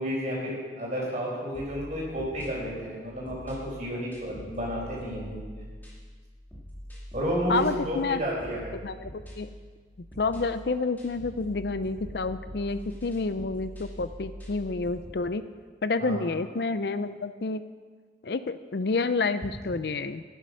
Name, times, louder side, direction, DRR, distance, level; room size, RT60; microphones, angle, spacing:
voice 1, 0.0-5.7 7.1-8.8 16.1-16.2, equal, 40° right, -4 dB, 5.0 m, -31 dB
sound 1, 1.5-15.3, equal, 10° left, 2.6 m, -44 dB
voice 2, 7.5-8.2 8.8-9.5 10.0-15.4 15.8-17.6 18.2-20.2, left 3 dB, 60° left, 12 dB, 0.5 m, -29 dB
14.0 x 10.0 x 6.4 m, 1.5 s
head